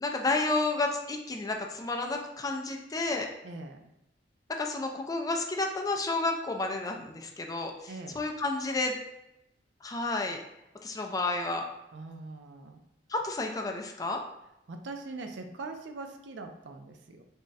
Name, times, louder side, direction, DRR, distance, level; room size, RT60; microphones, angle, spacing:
voice 1, 0.0-3.3 4.5-9.0 9.8-10.4 10.8-11.6 13.1-14.2, left 2 dB, 20° left, 3 dB, 0.3 m, -31 dB
voice 2, 3.4-3.8 7.9-8.2 11.9-12.8 14.7-17.2, right 3 dB, 70° right, 5 dB, 0.4 m, -42 dB
3.5 x 2.1 x 3.9 m, 0.89 s
head